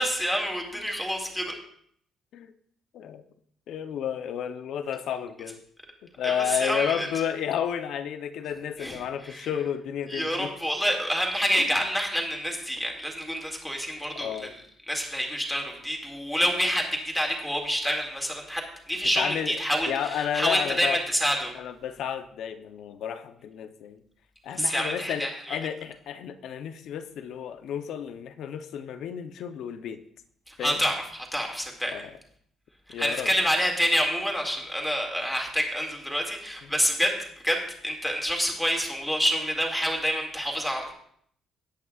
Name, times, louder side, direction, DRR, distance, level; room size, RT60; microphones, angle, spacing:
voice 1, 0.0-1.5 6.2-7.1 8.8-9.5 10.1-14.5 14.9-21.6 24.5-25.6 30.5-31.9 33.0-37.1 37.4-40.9, equal, 5° left, 1 dB, 2.2 m, -27 dB
voice 2, 3.7-5.6 6.0-10.5 11.5-11.8 14.2-14.6 19.2-19.6 19.9-21.0 21.5-24.0 24.4-30.0 30.6-30.8 31.9-32.1 32.9-33.3 36.6-36.7, left 9 dB, 75° left, 10 dB, 0.8 m, -32 dB
18.0 x 8.3 x 2.5 m, 0.64 s
cardioid pair, 120°, 0 cm